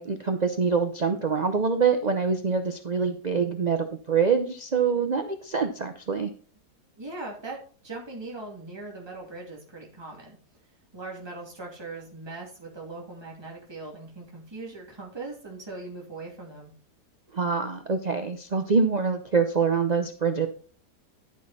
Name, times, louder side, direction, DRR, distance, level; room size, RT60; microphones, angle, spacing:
voice 1, 0.0-6.3 17.3-20.5, right 5 dB, 40° right, 7 dB, 0.6 m, -25 dB
voice 2, 7.0-10.4 10.9-16.7, right 3 dB, 15° right, -2 dB, 2.6 m, -40 dB
11.5 x 6.3 x 4.2 m, 0.42 s
omnidirectional pair, 1.7 m